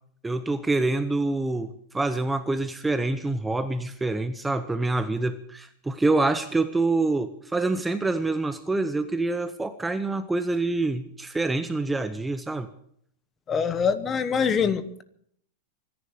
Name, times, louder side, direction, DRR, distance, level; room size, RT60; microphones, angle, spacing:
voice 1, 0.2-12.7, right 2 dB, 5° right, 10 dB, 0.7 m, -26 dB
voice 2, 13.5-15.0, left 6 dB, 20° left, 13 dB, 1.1 m, -24 dB
25.5 x 10.5 x 4.9 m, 0.66 s
supercardioid pair, 145°, 0 cm